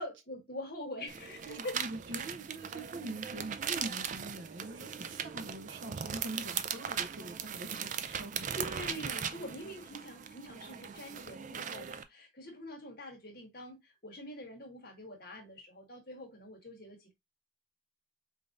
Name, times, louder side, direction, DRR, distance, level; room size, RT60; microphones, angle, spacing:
voice 1, 0.0-1.8 8.6-17.1, left 1 dB, 45° left, 1.4 m, -44 dB
sound 1, 1.1-12.0, right 8 dB, 40° right, 0.3 m, -39 dB
voice 2, 1.4-8.5, right 1 dB, 65° right, 0.7 m, -44 dB
5.1 x 2.6 x 2.5 m
head